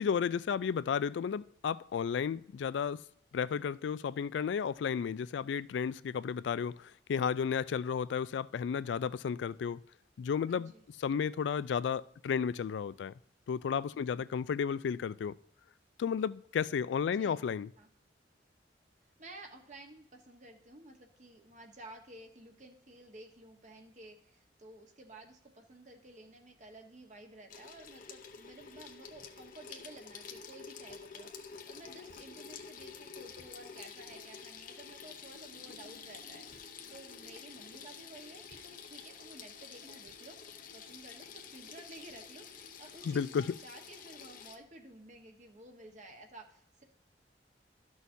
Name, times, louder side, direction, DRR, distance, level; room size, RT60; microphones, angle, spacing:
voice 1, 0.0-3.0 3.3-9.8 10.2-10.7 11.0-13.1 13.5-15.4 16.0-17.7 43.1-43.4, left 7 dB, 75° left, 0.3 m, -33 dB
voice 2, 10.4-10.8 13.9-14.3 17.0-17.4 17.7-17.9 19.2-46.8, right 2 dB, 45° right, 1.2 m, -53 dB
Water tap faucet / Sink (filling or washing), 27.5-44.6, left 6 dB, 50° left, 0.8 m, -49 dB
12.5 x 6.3 x 2.7 m
head